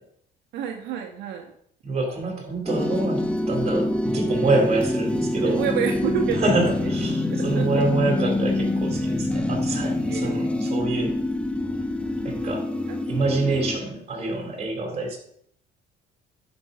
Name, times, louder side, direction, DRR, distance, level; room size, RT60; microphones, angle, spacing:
voice 1, 0.5-1.5 5.4-6.9 7.2-7.7 8.0-8.2 10.0-10.5 12.7-13.0 13.3-13.6, right 8 dB, 85° right, 3 dB, 1.1 m, -30 dB
voice 2, 1.8-5.6 6.4-11.1 12.2-12.7 13.1-15.2, right 2 dB, 40° right, 2 dB, 3.7 m, -26 dB
sound 1, 2.7-13.8, left 1 dB, 5° left, 0.7 m, -26 dB
11.5 x 5.4 x 5.6 m, 0.67 s
cardioid pair, 110°, 17 cm